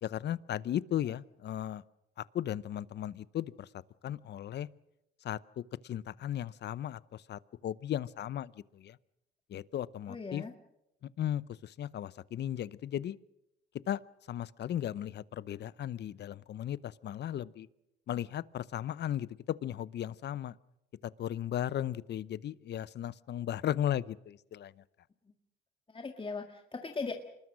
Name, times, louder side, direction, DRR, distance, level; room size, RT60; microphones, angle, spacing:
voice 1, 0.0-1.8 2.3-3.7 4.0-4.7 5.2-9.0 9.5-10.4 11.0-13.2 13.9-14.0 14.3-17.7 18.1-20.5 21.0-24.7, left 11 dB, 55° left, 19 dB, 0.7 m, -36 dB
voice 2, 10.1-10.5 25.9-27.1, left 4 dB, 25° left, 4 dB, 1.9 m, -38 dB
26.0 x 20.5 x 6.3 m, 0.85 s
cardioid pair, 80°, 20 cm